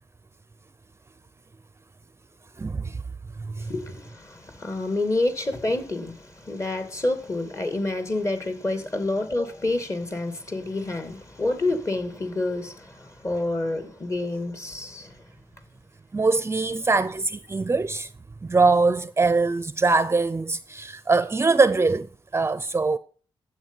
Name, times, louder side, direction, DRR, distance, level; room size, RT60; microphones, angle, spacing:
voice 1, 2.6-3.0 3.4-3.7 16.1-18.1 18.4-23.0, right 3 dB, 25° right, 0.7 m, -22 dB
voice 2, 3.6-15.2, left 2 dB, 30° left, 2.5 m, -28 dB
12.0 x 8.2 x 5.6 m
wide cardioid pair, 100°, 9 cm